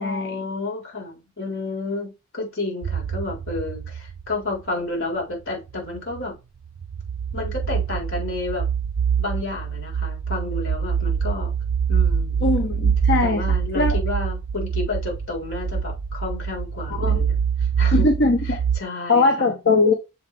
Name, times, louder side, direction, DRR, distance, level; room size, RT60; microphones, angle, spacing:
voice 1, 0.0-6.4 7.3-8.6 9.2-11.5 11.9-12.4 13.2-18.0 18.5-19.5, left 3 dB, 75° left, 4.0 m, -31 dB
sound 1, 2.8-4.6 5.8-6.3 6.8-18.8, right 7 dB, 50° right, 0.3 m, -24 dB
voice 2, 12.4-14.0 17.0-17.2 17.9-18.6 19.1-19.9, left 3 dB, 55° left, 0.9 m, -20 dB
7.1 x 4.0 x 3.4 m
head